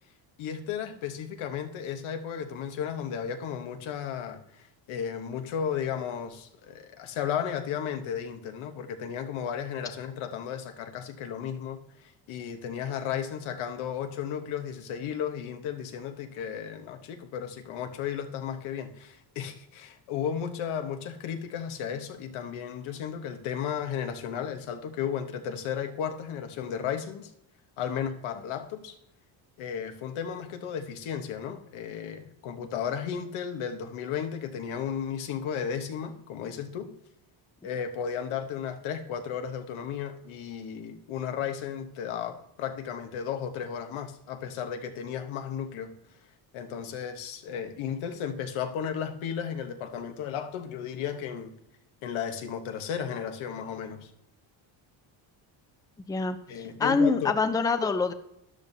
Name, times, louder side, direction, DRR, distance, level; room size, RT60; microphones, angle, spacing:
voice 1, 0.4-27.3 27.8-29.0 29.6-36.9 37.6-45.9 46.5-51.5 52.0-54.1 56.5-57.3, left 8 dB, 85° left, 6 dB, 1.3 m, -34 dB
voice 2, 56.1-58.1, left 4 dB, 10° left, 9 dB, 0.5 m, -25 dB
13.0 x 11.0 x 2.8 m, 0.80 s
cardioid pair, 135°, 47 cm